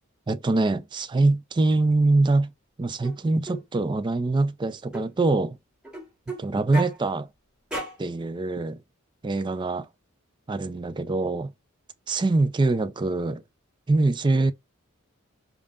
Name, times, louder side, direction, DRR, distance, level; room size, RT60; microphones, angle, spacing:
voice 1, 0.3-2.5 2.8-5.6 6.4-7.3 8.0-8.8 9.2-9.8 10.5-11.5 12.1-13.4 13.9-14.5, right 2 dB, 20° right, 0.3 m, -24 dB
sound 1, 3.0-3.2 3.5-3.6 4.9-5.1 5.8-6.4 6.7-7.0 7.7-8.0, right 1 dB, 5° right, 1.3 m, -33 dB
5.2 x 2.3 x 2.4 m
head